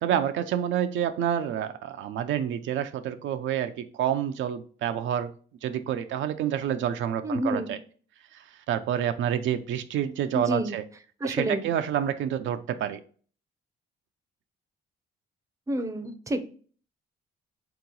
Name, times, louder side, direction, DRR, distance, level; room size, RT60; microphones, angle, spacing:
voice 1, 0.0-5.3 5.6-7.8 8.3-10.8 11.2-13.0, right 10 dB, 75° right, 0.4 m, -28 dB
voice 2, 7.2-7.7 10.3-10.7 11.2-11.7 15.7-16.4, equal, 15° right, 0.5 m, -29 dB
3.7 x 2.9 x 3.8 m
cardioid pair, 90°, 20 cm